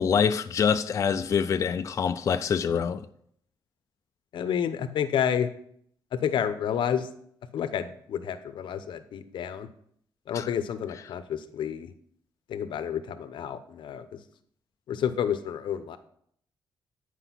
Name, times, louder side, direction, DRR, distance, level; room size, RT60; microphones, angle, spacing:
voice 1, 0.0-3.1 10.3-10.5, left 7 dB, 40° left, 0.3 m, -25 dB
voice 2, 4.3-5.5 6.1-7.1 7.5-9.7 10.3-11.9 12.5-14.2 14.9-16.0, left 8 dB, 85° left, 0.8 m, -30 dB
10.0 x 4.9 x 5.8 m
wide cardioid pair, 175°, 8 cm